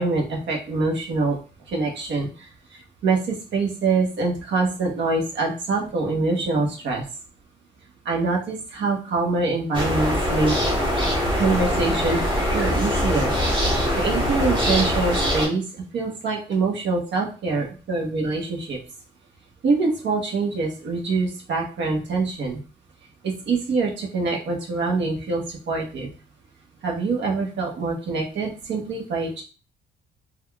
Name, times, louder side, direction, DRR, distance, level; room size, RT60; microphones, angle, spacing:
voice 1, 0.0-1.4 1.7-2.5 2.7-7.0 8.0-10.6 11.3-12.2 12.5-13.3 13.9-15.6 15.9-18.8 19.6-22.6 23.2-26.1 26.8-29.4, right 3 dB, 65° right, 0 dB, 1.0 m, -24 dB
sound 1, 9.7-15.5, equal, 25° right, 1.3 m, -22 dB
3.4 x 2.3 x 2.3 m, 0.36 s
cardioid pair, 90°, 20 cm